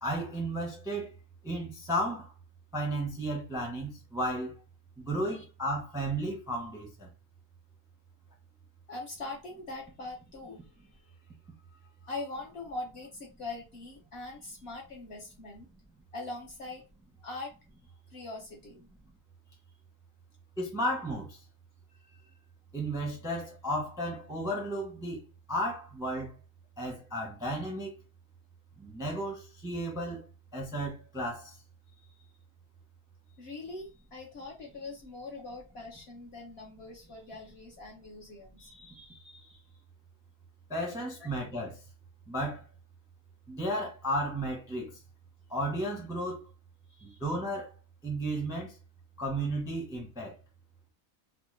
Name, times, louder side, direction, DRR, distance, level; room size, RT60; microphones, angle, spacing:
voice 1, 0.0-1.1 1.4-2.3 2.7-4.5 5.0-7.1 20.6-21.4 22.7-25.2 25.5-26.3 26.8-27.9 28.8-30.2 30.5-31.5 40.7-41.7 42.3-42.6 43.5-44.9 45.5-46.4 47.0-47.7 48.0-48.7 49.2-50.4, right 1 dB, 5° right, 0.5 m, -33 dB
voice 2, 8.9-11.1 11.7-15.7 16.1-16.8 17.2-17.5 18.1-18.9 21.9-22.3 32.0-32.3 33.3-39.6 41.2-41.3 46.9-47.2, left 2 dB, 55° left, 0.8 m, -43 dB
3.0 x 2.1 x 3.1 m
omnidirectional pair, 1.5 m